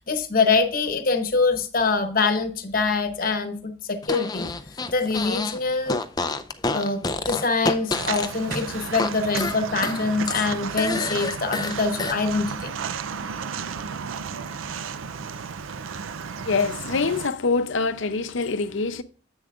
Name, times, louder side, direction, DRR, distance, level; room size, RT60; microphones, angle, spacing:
voice 1, 0.0-4.5 4.9-6.0 6.7-12.7, left 4 dB, 45° left, 1.0 m, -24 dB
Fart, 4.0-5.6 5.9-9.1 9.4-12.2, left 3 dB, 20° left, 0.4 m, -28 dB
Walk footsteps, 7.9-17.3, right 6 dB, 90° right, 0.5 m, -33 dB
voice 2, 16.4-19.0, left 4 dB, 75° left, 0.6 m, -25 dB
10.5 x 8.0 x 2.4 m
head